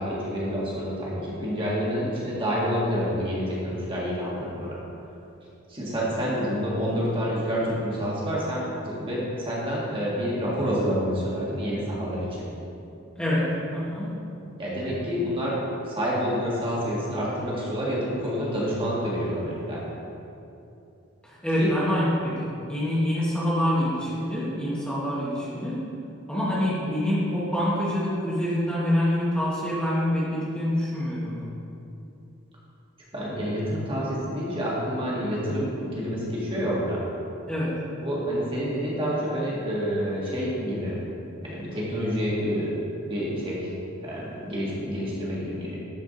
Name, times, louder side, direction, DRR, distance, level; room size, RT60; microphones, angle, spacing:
voice 1, 0.0-4.8 5.7-12.5 14.6-15.6 15.9-19.8 21.5-21.7 33.1-37.1 38.0-41.0 41.4-42.8 43.0-43.7 44.0-45.8, equal, 25° right, -6 dB, 1.7 m, -28 dB
voice 2, 13.1-14.2 21.2-25.8 26.3-31.5 37.5-37.8, equal, 5° left, -9 dB, 1.3 m, -26 dB
11.5 x 4.9 x 3.9 m, 2.7 s
head